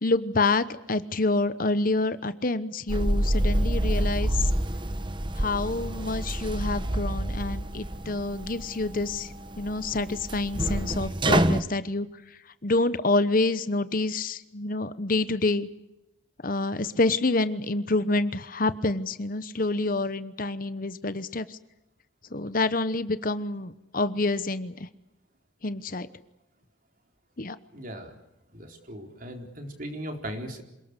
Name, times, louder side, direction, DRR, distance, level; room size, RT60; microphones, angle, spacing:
voice 1, 0.0-4.5 5.4-12.1 12.6-15.7 16.4-21.6 22.3-24.9 25.6-26.1 27.4-27.5, left 2 dB, 45° left, 13 dB, 1.0 m, -27 dB
sound 1, 2.9-11.6, right 1 dB, 25° right, 1.0 m, -28 dB
voice 2, 27.7-28.1 28.5-30.6, equal, 45° right, 3 dB, 4.2 m, -38 dB
27.5 x 19.0 x 8.2 m, 0.93 s
head